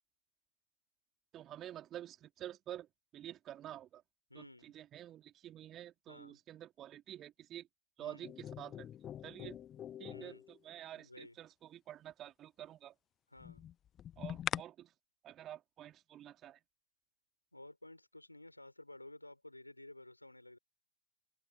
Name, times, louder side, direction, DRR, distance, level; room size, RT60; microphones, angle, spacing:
voice 1, 1.3-2.9 3.1-4.0 4.3-7.7 8.0-8.9 9.2-9.6 10.0-12.9 14.2-14.9 15.2-16.6, right 12 dB, 30° right, 2.7 m, -49 dB
voice 2, 4.3-4.7 6.1-6.4 8.0-8.3 10.1-10.4 11.0-11.4 13.3-13.7 17.5-20.6, left 1 dB, 85° left, 5.4 m, -54 dB
sound 1, 8.2-10.6 13.4-14.6, left 10 dB, 30° left, 0.7 m, -43 dB
open air
figure-of-eight pair, 90°, 0 cm